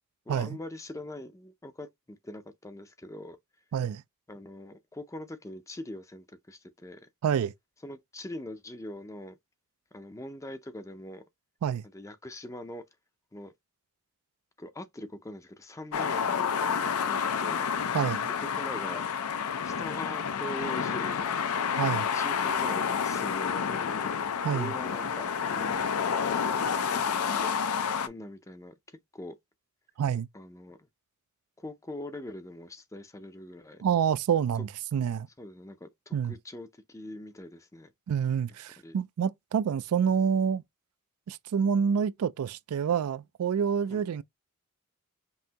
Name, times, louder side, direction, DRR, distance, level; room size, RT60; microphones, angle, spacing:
voice 1, 0.3-3.4 4.3-7.1 7.8-9.4 9.9-11.2 11.9-12.9 13.3-13.5 14.6-17.6 18.2-19.0 19.6-21.3 21.8-24.2 24.5-25.7 26.1-27.5 28.0-29.4 30.3-30.9 31.6-33.8 35.4-37.9 38.8-39.0 43.9-44.1, left 1 dB, 15° left, 0.5 m, -43 dB
voice 2, 3.7-4.0 7.2-7.5 11.6-11.8 17.9-18.3 21.8-22.1 24.4-24.7 30.0-30.3 33.8-35.3 36.1-36.3 38.1-40.6 41.3-44.2, right 7 dB, 85° right, 0.3 m, -27 dB
sound 1, 15.9-28.1, left 7 dB, 85° left, 0.5 m, -29 dB
5.5 x 2.7 x 2.8 m
head